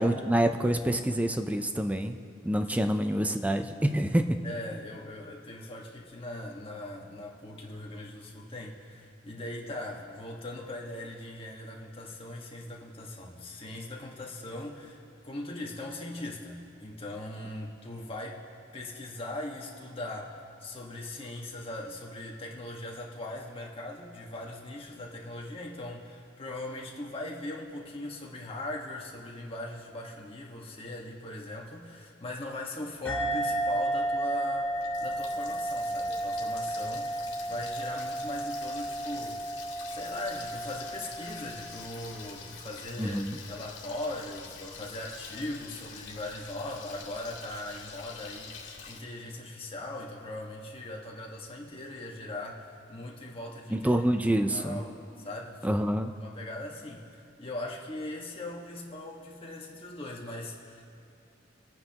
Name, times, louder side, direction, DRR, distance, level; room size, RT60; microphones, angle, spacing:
voice 1, 0.0-2.2 2.4-4.4 43.0-43.4 53.7-54.8 55.6-56.1, right 1 dB, 10° right, 6 dB, 0.5 m, -27 dB
voice 2, 2.6-3.0 4.4-18.4 18.7-53.9 54.5-55.8 56.2-60.8, left 1 dB, 30° left, -1 dB, 1.6 m, -40 dB
sound 1, 33.1-42.1, right 1 dB, 10° left, 2.3 m, -33 dB
Water tap faucet, 34.5-49.0, left 5 dB, 70° left, 2.2 m, -46 dB
28.0 x 9.4 x 3.0 m, 2.8 s
head